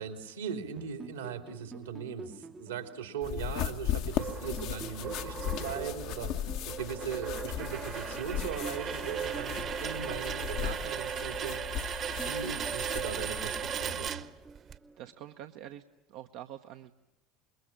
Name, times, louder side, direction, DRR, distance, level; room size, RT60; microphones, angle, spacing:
voice 1, 0.0-12.0 12.2-14.2, right 7 dB, 80° right, 6 dB, 2.8 m, -39 dB
sound 1, 0.8-4.1 4.6-7.8 8.4-11.7 12.2-15.4, right 3 dB, 20° right, 0.9 m, -48 dB
sound 2, 3.2-14.1, left 10 dB, 55° left, 1.2 m, -37 dB
sound 3, 4.2-14.7, right 8 dB, 40° right, 1.3 m, -37 dB
voice 2, 15.0-16.9, right 12 dB, 60° right, 6 dB, 0.9 m, -46 dB
27.0 x 22.0 x 8.9 m, 0.92 s
figure-of-eight pair, 70°, 0 cm